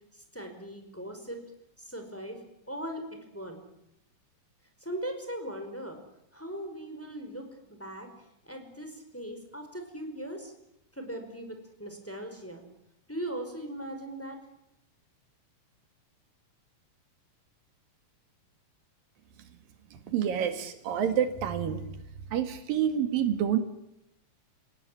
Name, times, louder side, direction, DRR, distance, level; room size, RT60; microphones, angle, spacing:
voice 1, 0.1-1.4 1.8-3.6 4.8-6.0 6.3-8.1 8.4-10.5 10.9-12.6 13.1-14.4, right 1 dB, 5° left, 4 dB, 4.8 m, -39 dB
voice 2, 19.9-21.8 22.3-23.6, right 9 dB, 90° right, 8 dB, 3.7 m, -28 dB
29.5 x 18.0 x 10.0 m, 0.84 s
omnidirectional pair, 3.9 m